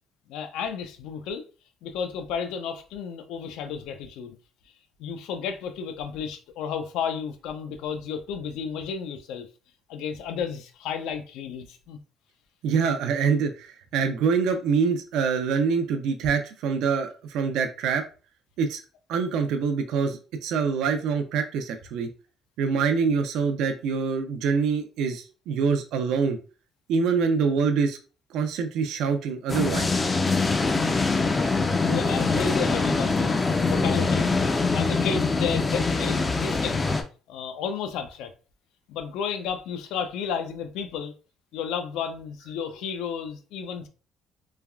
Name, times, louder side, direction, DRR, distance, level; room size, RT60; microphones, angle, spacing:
voice 1, 0.3-1.4 1.8-4.4 5.0-9.5 9.9-12.0 31.9-34.2 34.7-36.8 37.3-38.3 38.9-41.1 41.5-43.9, left 7 dB, 85° left, 0.4 m, -32 dB
voice 2, 12.6-18.0 18.6-18.8 19.1-22.1 22.6-26.4 26.9-28.0 28.3-29.9, right 5 dB, 80° right, 0.4 m, -25 dB
sound 1, 29.5-37.0, left 3 dB, 20° left, 0.3 m, -24 dB
3.3 x 2.3 x 2.2 m
cardioid pair, 145°, 0 cm